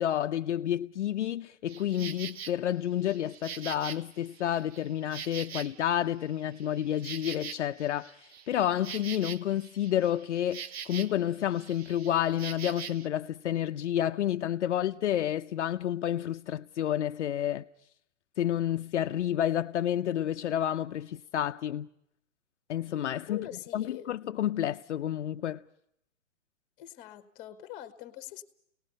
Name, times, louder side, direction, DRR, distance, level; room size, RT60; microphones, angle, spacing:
voice 1, 0.0-17.6 18.4-21.9 22.7-23.5 23.7-25.6, left 11 dB, 65° left, 0.7 m, -30 dB
Insect, 1.7-2.5 3.0-6.1 6.4-11.3 11.5-13.1, right 8 dB, 55° right, 1.0 m, -43 dB
voice 2, 23.3-24.1 26.8-28.4, left 12 dB, 20° left, 1.3 m, -43 dB
29.5 x 19.0 x 5.4 m
hypercardioid pair, 155°, 37 cm